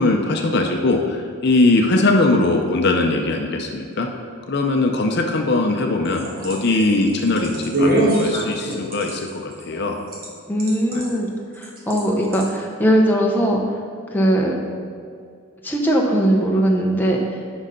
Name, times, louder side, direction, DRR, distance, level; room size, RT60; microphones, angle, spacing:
voice 1, 0.0-4.1 4.5-10.0 10.9-11.0, left 2 dB, 50° left, 3 dB, 0.6 m, -20 dB
sound 1, 5.9-10.3 10.6-11.1 11.6-12.0 12.3-12.5, right 1 dB, 40° right, 1.3 m, -23 dB
voice 2, 10.5-11.3 11.5-13.6 14.1-14.5 15.6-17.4, right 1 dB, 10° left, -2 dB, 0.6 m, -19 dB
6.2 x 5.4 x 5.0 m, 2.3 s
head